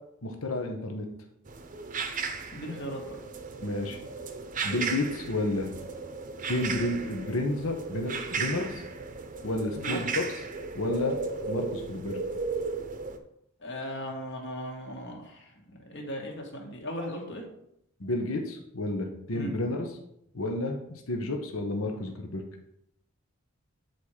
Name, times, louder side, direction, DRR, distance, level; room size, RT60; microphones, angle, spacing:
voice 1, 0.2-1.1 3.6-4.0 4.6-5.7 6.5-8.8 9.4-10.2 10.7-12.2 18.0-19.9 20.3-22.4, left 2 dB, 75° left, 3 dB, 1.2 m, -31 dB
sound 1, 1.5-13.2, right 4 dB, 40° right, 0.7 m, -35 dB
voice 2, 2.5-3.2 9.7-10.0 13.6-17.4 19.3-19.5, equal, 55° left, 1 dB, 1.9 m, -37 dB
9.2 x 4.4 x 4.9 m, 0.75 s
head